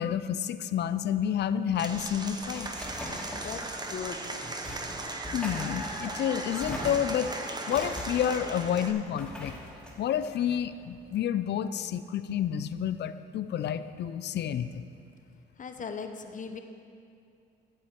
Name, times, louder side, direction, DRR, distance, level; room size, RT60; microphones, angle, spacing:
voice 1, 0.0-2.7 5.3-7.3 7.7-9.5 10.0-14.8, left 9 dB, 60° left, 13 dB, 0.5 m, -29 dB
Applause / Crowd, 1.8-8.9, right 2 dB, 20° right, 0.9 m, -37 dB
sound 1, 2.1-11.2, left 1 dB, 5° left, 2.8 m, -42 dB
voice 2, 3.3-4.3 15.6-16.6, left 5 dB, 40° left, 7 dB, 0.8 m, -39 dB
13.0 x 7.7 x 4.5 m, 2.4 s
cardioid pair, 90°, 20 cm